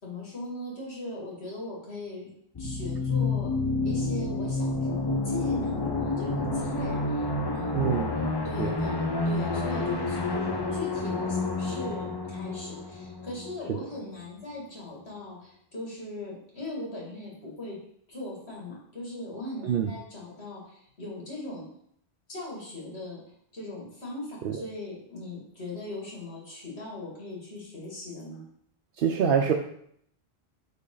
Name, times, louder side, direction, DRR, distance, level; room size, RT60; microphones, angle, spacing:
voice 1, 0.0-2.3 2.6-3.5 3.8-8.1 8.4-17.8 18.1-21.7 22.3-23.2 23.5-28.4, left 2 dB, 80° left, -4 dB, 2.5 m, -39 dB
sound 1, 2.6-14.1, left 3 dB, 30° left, 0.5 m, -29 dB
voice 2, 7.7-8.1 8.6-8.8 13.7-13.8 19.6-19.9 24.4-24.6 29.0-29.5, right 7 dB, 65° right, 2 dB, 0.8 m, -25 dB
8.2 x 3.9 x 3.8 m, 0.68 s
omnidirectional pair, 1.1 m